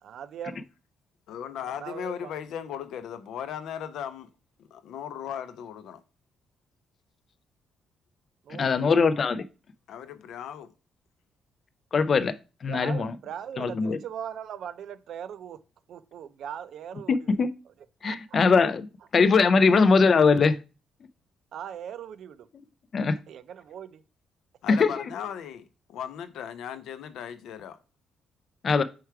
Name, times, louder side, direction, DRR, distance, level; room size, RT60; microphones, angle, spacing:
voice 1, 0.0-0.7 1.8-2.3 8.4-9.0 12.7-15.6 15.9-17.4 18.0-18.5 19.6-19.7 21.5-22.5 23.3-24.0, right 9 dB, 60° right, 0.5 m, -39 dB
voice 2, 1.3-4.3 4.6-6.0 9.9-10.7 24.6-27.8, left 8 dB, 75° left, 0.6 m, -37 dB
voice 3, 8.6-9.4 11.9-12.4 12.6-13.1 13.6-14.0 17.1-17.5 18.0-18.9 19.1-20.6 22.9-23.2 24.7-25.0 28.6-28.8, left 4 dB, 35° left, 0.4 m, -21 dB
4.6 x 4.6 x 4.6 m
cardioid pair, 175°, 0 cm